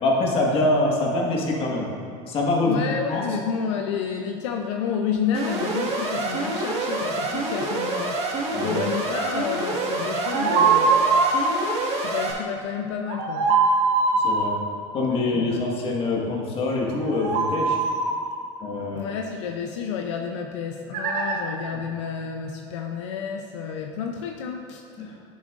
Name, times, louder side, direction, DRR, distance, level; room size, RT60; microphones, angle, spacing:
voice 1, 0.0-1.9 2.3-2.8 3.1-3.2 8.5-8.8 14.1-14.6 14.9-17.8 18.6-19.1 25.0-25.1, left 2 dB, 40° left, -2 dB, 1.6 m, -24 dB
voice 2, 2.6-8.2 8.6-11.0 12.0-13.5 15.3-15.7 18.9-24.8, left 7 dB, 85° left, 3 dB, 0.6 m, -30 dB
Alarm, 5.3-12.3, right 2 dB, 45° right, 1.6 m, -27 dB
sound 1, 10.2-11.5 13.1-14.4 16.9-18.2 20.9-21.4, right 4 dB, 65° right, 1.2 m, -21 dB
10.0 x 7.2 x 2.5 m, 2.2 s
supercardioid pair, 115°, 15 cm